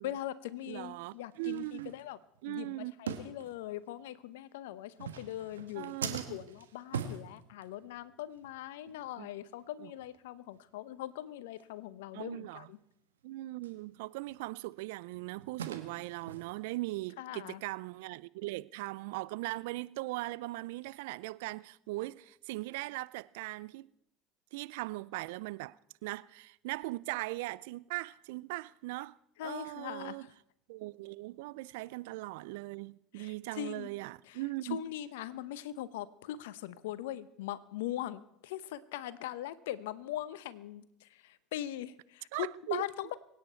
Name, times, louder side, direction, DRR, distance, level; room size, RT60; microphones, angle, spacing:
voice 1, 0.0-2.2 2.5-12.8 17.2-17.6 29.4-30.3 33.1-33.9 34.3-43.1, left 13 dB, 75° left, 0.8 m, -41 dB
sound 1, 0.6-0.7 1.4-2.4 3.1-3.9 4.9-8.1 8.4-8.6 8.9-9.0 9.5-9.6 10.0-10.1 10.5-10.6 11.0-11.1 11.6-11.7 13.6-13.8 14.3-16.8, right 7 dB, 90° right, 1.2 m, -42 dB
voice 2, 0.7-1.9 2.4-2.9 5.8-6.4 9.2-9.3 9.8-9.9 12.1-12.7 13.2-23.9 24.5-25.8 26.0-29.2 29.4-30.3 30.7-34.8 42.3-42.8, right 20 dB, 75° right, 0.4 m, -39 dB
23.0 x 9.5 x 4.4 m
hypercardioid pair, 75°, 0 cm